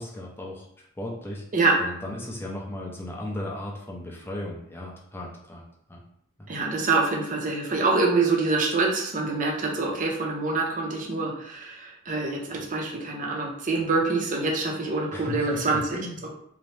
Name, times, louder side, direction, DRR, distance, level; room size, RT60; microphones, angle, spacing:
voice 1, 0.0-1.4 1.8-6.0 6.4-6.5 15.1-16.3, left 1 dB, 10° left, -2 dB, 0.5 m, -36 dB
voice 2, 6.5-15.8 16.2-16.3, right 3 dB, 40° right, -1 dB, 0.6 m, -25 dB
2.8 x 2.1 x 3.1 m, 0.69 s
head